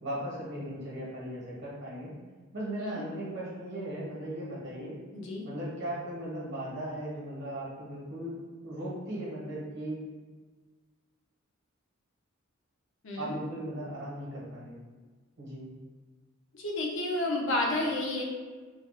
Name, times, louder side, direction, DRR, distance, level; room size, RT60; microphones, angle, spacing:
voice 1, 0.0-2.1 2.5-4.9 5.4-8.4 8.6-10.0 13.2-14.7 15.4-15.7, right 1 dB, 55° right, -6 dB, 1.0 m, -37 dB
voice 2, 5.1-5.5 13.0-13.4 16.5-18.2, left 2 dB, 60° left, -1 dB, 0.5 m, -31 dB
3.3 x 2.3 x 2.4 m, 1.4 s
head